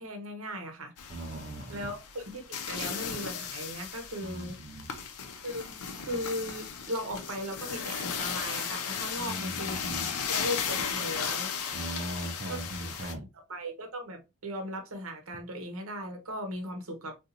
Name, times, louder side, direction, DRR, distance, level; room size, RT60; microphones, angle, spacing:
voice 1, 0.0-0.9 1.7-4.6 5.4-9.8 10.3-11.5 12.5-12.8 13.5-17.2, equal, 65° right, 0.8 m, -37 dB
sound 1, 1.0-13.1, left 6 dB, 80° left, 0.6 m, -36 dB
voice 2, 1.1-1.9 4.2-4.9 9.2-10.1 11.7-13.3, right 1 dB, 40° right, 0.5 m, -39 dB
3.8 x 2.4 x 2.8 m
head